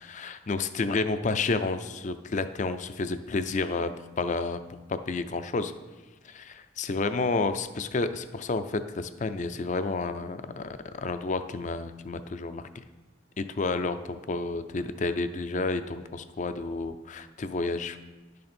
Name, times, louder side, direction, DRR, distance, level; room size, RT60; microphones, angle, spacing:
voice 1, 0.1-3.9 4.2-4.6 4.9-5.7 6.2-12.7 13.4-18.0, left 3 dB, 40° left, 10 dB, 0.5 m, -30 dB
10.5 x 6.6 x 4.3 m, 1.2 s
head